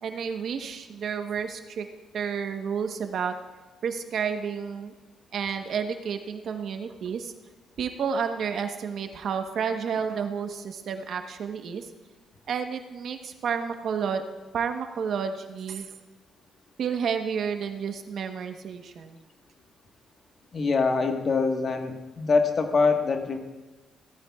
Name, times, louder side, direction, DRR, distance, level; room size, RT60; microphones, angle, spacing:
voice 1, 0.0-1.9 2.1-3.3 3.8-4.9 5.3-7.3 7.8-11.9 12.5-14.2 14.5-15.9 16.8-19.2, right 6 dB, 65° right, 6 dB, 1.1 m, -30 dB
voice 2, 20.5-23.4, left 4 dB, 45° left, 4 dB, 1.4 m, -24 dB
17.0 x 13.5 x 2.4 m, 1.2 s
cardioid pair, 90°, 0 cm